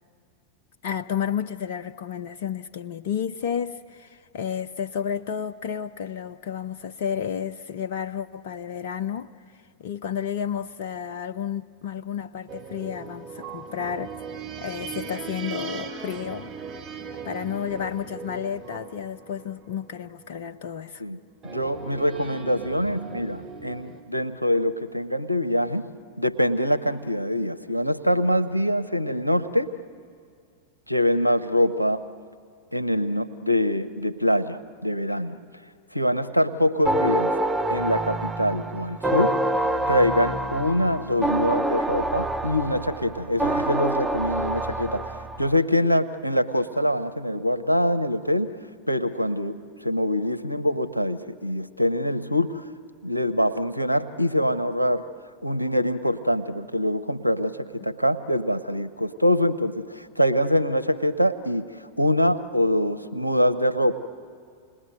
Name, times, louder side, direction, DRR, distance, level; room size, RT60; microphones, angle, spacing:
voice 1, 0.8-9.3 9.8-14.1 14.6-16.5 17.2-21.0, left 8 dB, 55° left, 0.6 m, -31 dB
sound 1, 12.5-20.3 21.4-24.0, right 5 dB, 25° right, 3.2 m, -39 dB
voice 2, 21.4-25.9 26.2-29.7 30.9-32.0 32.7-35.4 35.9-37.3 37.7-39.4 39.9-48.6 48.9-52.6 53.0-55.1 55.4-64.0, left 1 dB, 90° left, 0.8 m, -24 dB
sound 2, 36.9-45.6, right 1 dB, 10° right, 0.7 m, -26 dB
28.5 x 20.0 x 9.1 m
figure-of-eight pair, 90°, 0 cm